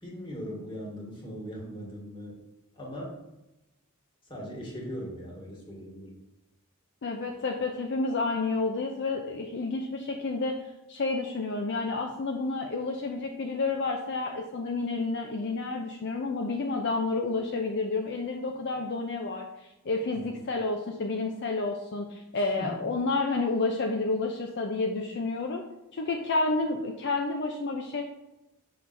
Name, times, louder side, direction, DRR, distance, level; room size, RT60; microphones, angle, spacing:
voice 1, 0.0-2.4 2.7-3.1 4.3-6.2 20.2-20.4 22.3-22.8, equal, 25° left, -4 dB, 1.9 m, -39 dB
voice 2, 7.0-10.6 10.9-25.6 25.9-28.0, left 3 dB, 55° left, 2 dB, 0.5 m, -30 dB
6.6 x 5.8 x 2.6 m, 0.96 s
head